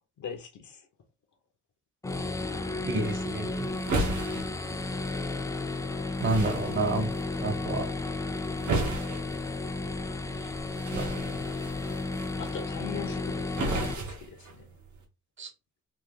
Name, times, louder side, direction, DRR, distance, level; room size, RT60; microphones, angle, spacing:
voice 1, 0.2-0.9 2.3-2.9 10.3-10.5 10.9-11.5 12.4-14.6, left 7 dB, 80° left, 1.1 m, -42 dB
sound 1, 2.0-13.9, left 3 dB, 10° left, 0.4 m, -33 dB
voice 2, 2.8-3.7 6.2-7.1 7.4-7.9 10.9-11.3 15.4-15.5, right 2 dB, 40° right, 0.9 m, -29 dB
sound 2, 3.0-15.0, right 2 dB, 85° right, 1.5 m, -36 dB
4.2 x 2.9 x 3.8 m
wide cardioid pair, 135°, 29 cm